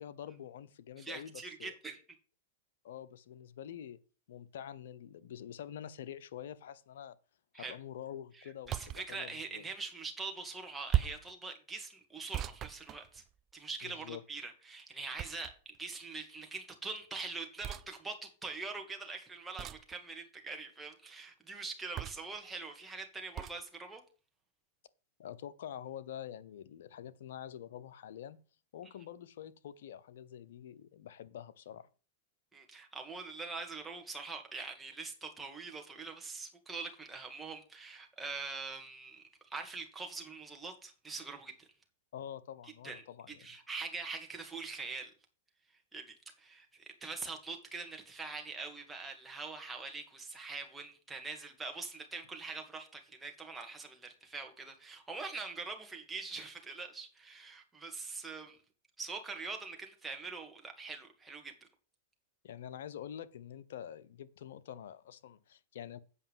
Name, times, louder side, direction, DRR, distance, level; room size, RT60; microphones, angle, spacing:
voice 1, 0.0-1.8 2.8-4.0 4.3-7.2 7.5-9.6 13.8-14.2 25.2-28.4 28.7-31.9 42.1-43.5 62.4-66.0, left 10 dB, 70° left, 0.9 m, -46 dB
voice 2, 1.0-2.0 7.5-7.8 8.7-13.2 13.5-24.0 32.5-41.7 42.8-43.0 43.3-45.1 45.9-58.6 59.0-61.5, right 4 dB, 10° right, 2.4 m, -43 dB
sound 1, 8.6-9.1 10.9-11.3 12.3-13.5 15.2-15.8 17.6-17.9 19.6-19.9 22.0-22.4 23.4-23.6, right 11 dB, 30° right, 0.5 m, -36 dB
8.6 x 5.5 x 7.5 m
hypercardioid pair, 130°, 0 cm